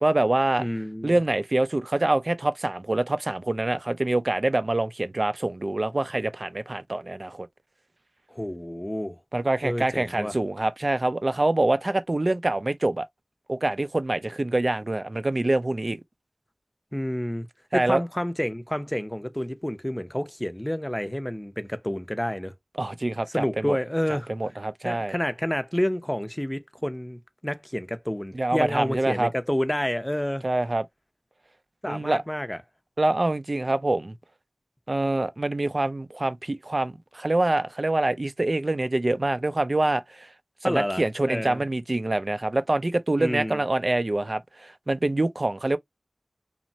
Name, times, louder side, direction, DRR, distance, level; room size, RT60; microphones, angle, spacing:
voice 1, 0.0-0.7 1.0-7.5 9.3-13.1 13.5-16.0 17.7-18.0 22.8-23.8 24.1-25.1 28.3-29.3 30.4-30.8 31.8-32.2 33.0-34.2 34.9-40.3 40.6-45.8, right 2 dB, 55° right, 0.4 m, -25 dB
voice 2, 0.6-1.2 8.3-9.2 9.6-10.3 16.9-17.5 17.7-22.5 23.3-24.3 24.8-30.4 31.8-32.6 40.6-41.6 43.2-43.6, equal, 15° left, 0.5 m, -29 dB
3.0 x 2.0 x 2.6 m
wide cardioid pair, 50°, 0 cm